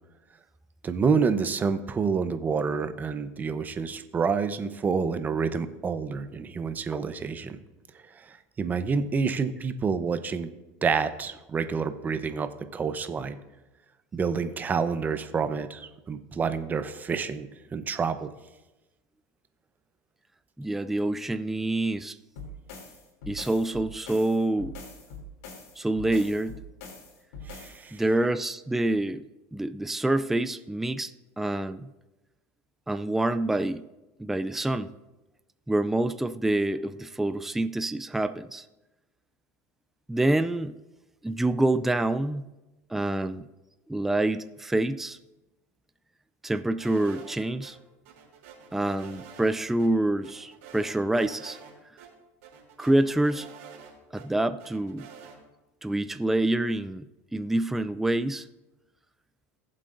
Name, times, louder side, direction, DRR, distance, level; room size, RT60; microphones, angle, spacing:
voice 1, 0.8-7.6 8.2-10.5 10.8-13.4 14.1-18.3 27.5-28.0, right 5 dB, 25° right, 10 dB, 0.8 m, -28 dB
voice 2, 20.6-22.2 23.3-24.7 25.8-26.6 27.9-29.2 29.5-31.1 31.4-31.9 32.9-33.8 34.2-34.9 35.7-38.6 40.1-40.7 41.2-42.5 42.9-43.5 43.9-45.2 46.4-47.8 48.7-51.6 52.8-53.5 54.1-55.1 55.8-57.0 57.3-58.5, right 1 dB, 5° right, 11 dB, 0.3 m, -26 dB
sound 1, 22.4-27.8, left 2 dB, 85° left, 3.1 m, -43 dB
sound 2, 46.8-47.7 48.1-49.5 49.8-49.9 50.2-51.7 52.0-52.1 52.4-54.3 54.6-55.4, right 7 dB, 85° right, 3.3 m, -48 dB
19.5 x 7.6 x 2.6 m, 1.0 s
supercardioid pair, 120°, 7 cm